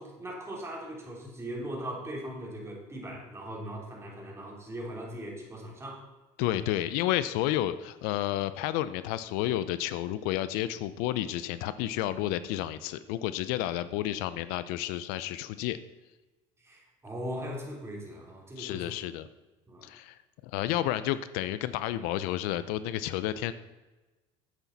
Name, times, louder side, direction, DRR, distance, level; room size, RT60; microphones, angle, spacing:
voice 1, 0.0-6.0 6.5-6.7 16.6-19.0 19.7-19.9, equal, 15° right, -2 dB, 3.3 m, -39 dB
voice 2, 6.4-15.8 18.6-19.3 19.8-20.2 20.4-23.5, left 13 dB, 75° left, 14 dB, 0.5 m, -31 dB
10.5 x 8.2 x 4.0 m, 1.1 s
supercardioid pair, 100°, 16 cm